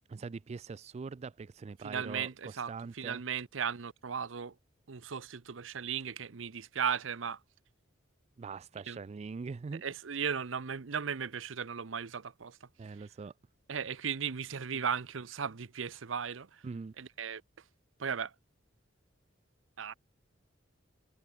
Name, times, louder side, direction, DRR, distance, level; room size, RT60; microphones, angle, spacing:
voice 1, 0.1-3.2 8.4-9.8 12.8-13.3 16.6-16.9, right 4 dB, 35° right, 0.3 m, -42 dB
voice 2, 1.8-4.6 4.9-7.4 8.9-9.0 9.8-12.6 12.9-13.1 13.7-16.6 17.0-17.4 18.0-18.3 19.8-19.9, right 7 dB, 80° right, 0.7 m, -36 dB
head